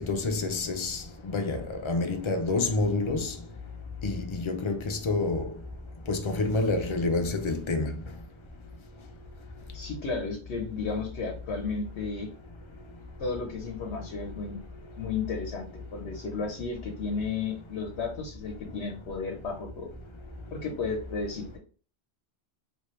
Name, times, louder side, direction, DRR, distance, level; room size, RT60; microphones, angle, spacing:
voice 1, 0.0-3.4 4.0-5.5 6.1-8.0, left 3 dB, 50° left, 0.3 m, -28 dB
voice 2, 9.7-12.3 13.2-14.6 15.0-19.9 20.5-21.6, left 4 dB, 80° left, 1.0 m, -33 dB
3.1 x 2.9 x 3.0 m
omnidirectional pair, 1.1 m